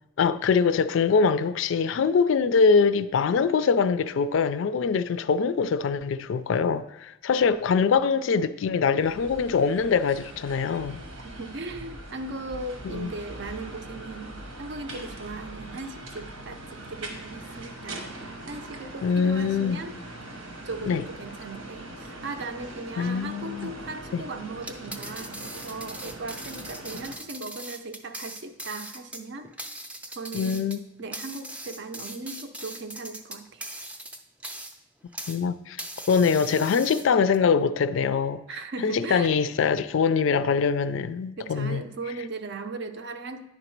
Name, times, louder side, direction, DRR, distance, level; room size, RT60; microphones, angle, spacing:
voice 1, 0.2-11.0 12.8-13.1 19.0-19.8 20.9-21.0 23.0-23.7 24.1-24.2 30.3-30.8 35.3-35.8 36.1-38.4 38.8-41.8, left 5 dB, 65° left, 0.3 m, -23 dB
sound 1, 9.0-27.2, right 1 dB, 85° right, 1.2 m, -41 dB
voice 2, 11.2-18.2 18.5-20.0 20.6-29.5 30.2-30.6 31.0-33.7 38.5-39.3 41.4-43.4, right 3 dB, 60° right, 0.6 m, -38 dB
sound 2, 24.6-35.4 35.8-37.4, right 1 dB, 5° right, 0.4 m, -40 dB
9.9 x 3.9 x 4.5 m
head